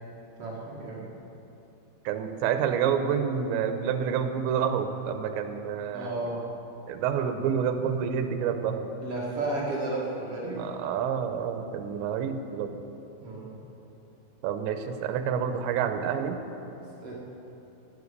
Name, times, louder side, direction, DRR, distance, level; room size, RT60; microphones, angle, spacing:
voice 1, 0.4-1.0 5.9-6.5 9.0-10.7 13.2-13.5 16.7-17.1, right 2 dB, 45° right, -5 dB, 2.0 m, -33 dB
voice 2, 2.0-6.3 6.9-8.9 10.6-12.8 14.4-16.4, right 7 dB, 80° right, 8 dB, 3.0 m, -28 dB
16.5 x 9.1 x 6.6 m, 2.9 s
omnidirectional pair, 5.3 m